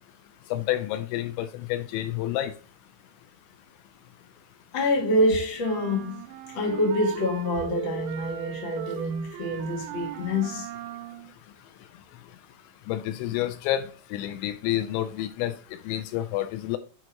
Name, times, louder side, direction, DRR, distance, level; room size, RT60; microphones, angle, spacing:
voice 1, 0.5-2.5 12.9-15.5 15.9-16.8, left 13 dB, 85° left, 2.8 m, -29 dB
voice 2, 4.7-6.2 6.5-10.7, left 1 dB, 45° left, 1.6 m, -26 dB
sound 1, 5.6-11.3, right 11 dB, 90° right, 2.9 m, -39 dB
7.9 x 2.9 x 4.5 m
omnidirectional pair, 5.2 m